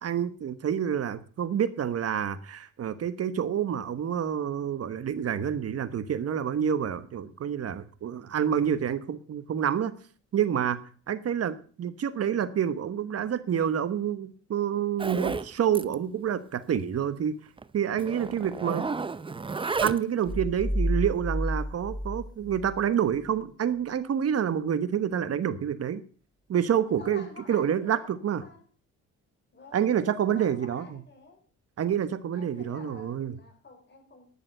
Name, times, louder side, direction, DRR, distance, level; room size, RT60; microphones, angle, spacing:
voice 1, 0.0-10.0 10.3-10.8 11.1-17.4 17.7-18.9 19.8-26.0 26.5-28.4 29.7-31.0 31.8-33.4, right 9 dB, 55° right, 13 dB, 1.3 m, -28 dB
Zipper (clothing), 15.0-15.5 15.7-15.9 16.2-16.3 16.7-16.8 17.6-17.7 18.0-20.2, right 4 dB, 15° right, 0.6 m, -32 dB
sound 1, 20.3-22.9, equal, 15° left, 0.9 m, -30 dB
voice 2, 26.8-28.6 29.5-31.4 32.3-34.3, left 4 dB, 35° left, 5 dB, 3.9 m, -49 dB
11.5 x 7.1 x 7.9 m, 0.42 s
cardioid pair, 90°, 30 cm